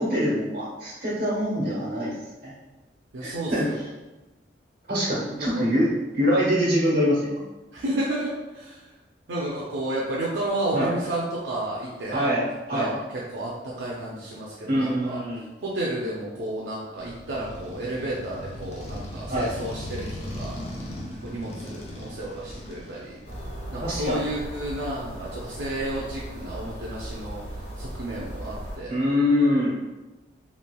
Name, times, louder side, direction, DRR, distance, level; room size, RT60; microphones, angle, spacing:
voice 1, 0.0-2.1 2.4-2.5 3.2-3.7 4.9-5.9 6.1-7.4 10.7-10.9 12.1-12.4 12.7-12.9 14.7-15.4 19.3-19.5 23.8-24.3 28.9-29.8, equal, 60° right, -7 dB, 1.2 m, -24 dB
voice 2, 3.1-3.8 5.4-5.6 7.7-8.9 9.3-12.3 12.7-15.2 15.6-20.6 21.2-23.2 23.7-27.4 27.8-29.0, right 1 dB, 90° right, -5 dB, 0.5 m, -31 dB
Motorcycle, 17.0-23.7, left 1 dB, 40° left, 0.5 m, -38 dB
sound 1, 23.2-28.8, right 1 dB, 80° left, 1.2 m, -37 dB
3.1 x 2.8 x 2.2 m, 1.1 s
head